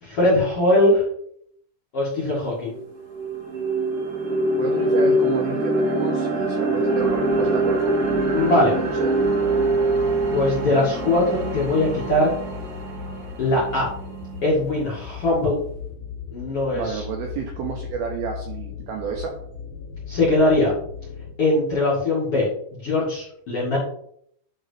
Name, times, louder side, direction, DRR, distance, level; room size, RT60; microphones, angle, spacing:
voice 1, 0.0-1.0 1.9-2.7 8.3-8.7 10.3-12.3 13.4-13.9 14.4-15.6 16.3-17.0 20.1-20.7 21.4-23.8, left 2 dB, 50° left, -6 dB, 1.8 m, -21 dB
sound 1, 2.2-2.3 2.7-14.8, right 2 dB, 60° right, 2.1 m, -24 dB
voice 2, 4.6-7.9 8.8-9.2 16.7-19.3, right 6 dB, 85° right, 1 dB, 2.2 m, -31 dB
sound 2, 7.0-21.4, left 7 dB, 80° left, 2.9 m, -38 dB
10.5 x 3.8 x 3.3 m, 0.67 s
omnidirectional pair, 5.5 m